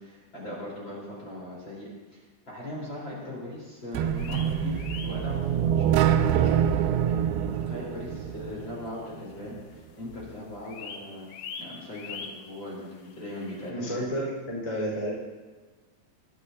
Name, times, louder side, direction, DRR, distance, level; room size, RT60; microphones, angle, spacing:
voice 1, 0.0-4.8 5.0-11.3 11.6-13.9, left 1 dB, 30° left, -6 dB, 4.6 m, -40 dB
sound 1, 3.9-8.9, right 9 dB, 85° right, 2.2 m, -25 dB
sound 2, 4.2-5.9 6.2-6.3 6.8-6.9 7.7-7.8 8.0-8.1 8.3-9.4 9.7-10.1 10.3-13.7, left 5 dB, 85° left, 1.7 m, -43 dB
voice 2, 13.7-15.1, equal, 10° left, -4 dB, 4.0 m, -31 dB
23.0 x 12.5 x 2.8 m, 1.3 s
omnidirectional pair, 4.9 m